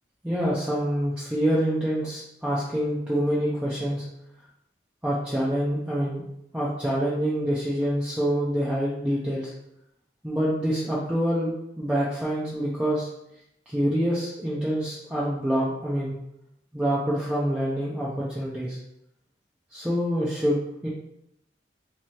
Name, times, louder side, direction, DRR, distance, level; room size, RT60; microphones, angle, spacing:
voice 1, 0.2-4.0 5.0-6.2 6.5-9.5 10.2-11.5 11.8-13.1 13.7-16.2 16.7-18.8 19.7-20.9, equal, 5° right, -8 dB, 0.6 m, -26 dB
3.3 x 3.0 x 4.5 m, 0.80 s
head